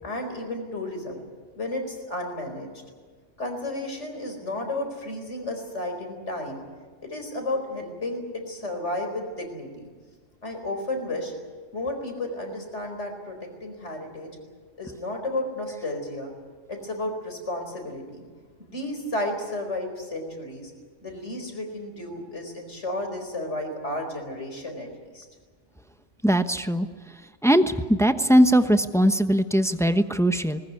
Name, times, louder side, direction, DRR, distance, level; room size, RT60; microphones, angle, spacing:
voice 1, 0.0-1.2 1.6-2.7 3.4-6.6 7.0-9.9 10.4-11.3 11.7-14.4 14.8-16.3 16.7-18.3 18.6-20.7 21.0-24.9 25.1-25.2, left 1 dB, 70° left, 4 dB, 4.9 m, -32 dB
voice 2, 26.2-26.9 27.4-30.6, equal, 5° left, 9 dB, 0.9 m, -20 dB
20.0 x 19.5 x 9.8 m, 1.5 s
omnidirectional pair, 1.2 m